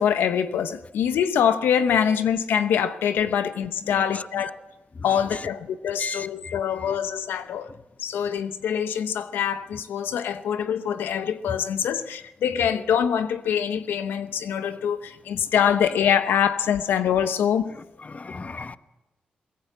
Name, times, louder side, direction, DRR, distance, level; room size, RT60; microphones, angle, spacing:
voice 1, 0.0-4.6 5.0-7.7 8.0-17.7, left 8 dB, 85° left, 10 dB, 0.9 m, -24 dB
voice 2, 3.8-4.5 4.9-5.5 6.0-6.9 11.5-11.6 12.5-12.7 15.5-15.6 18.0-18.8, left 4 dB, 45° left, 12 dB, 1.0 m, -36 dB
21.0 x 18.5 x 8.1 m, 1.0 s
supercardioid pair, 45°, 3 cm